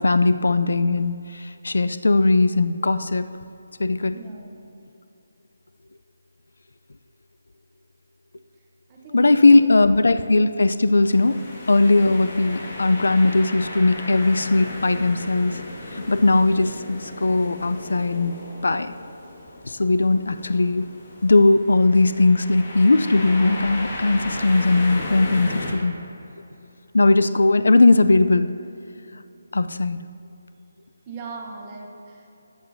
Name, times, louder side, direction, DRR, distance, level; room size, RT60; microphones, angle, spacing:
voice 1, 0.0-3.3 3.8-4.2 9.1-11.4 11.7-15.6 15.9-18.3 18.6-18.9 19.7-20.9 21.2-26.0 26.9-28.5 29.5-30.0, left 2 dB, 90° left, 12 dB, 0.4 m, -18 dB
voice 2, 4.1-4.6 8.9-10.0 11.3-11.4 31.1-32.3, right 3 dB, 15° right, 0 dB, 0.8 m, -39 dB
sound 1, 11.1-25.7, left 2 dB, 30° left, 1.7 m, -35 dB
16.5 x 7.1 x 2.7 m, 2.8 s
hypercardioid pair, 180°, 0 cm